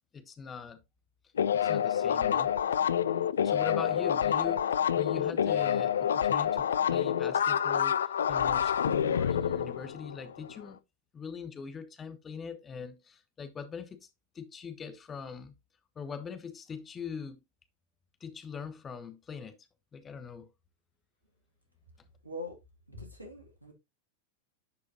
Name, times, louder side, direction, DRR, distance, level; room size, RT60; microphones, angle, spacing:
voice 1, 0.1-0.8 1.5-2.5 3.4-10.8 11.1-14.1 14.3-15.5 16.0-17.4 18.2-19.6 19.9-20.5, left 6 dB, 20° left, 1.0 m, -42 dB
sound 1, 1.4-10.5, left 9 dB, 65° left, 0.4 m, -28 dB
voice 2, 22.2-22.6 22.9-23.7, left 1 dB, 85° right, 2.4 m, -42 dB
10.5 x 4.9 x 2.8 m
figure-of-eight pair, 90°, 0 cm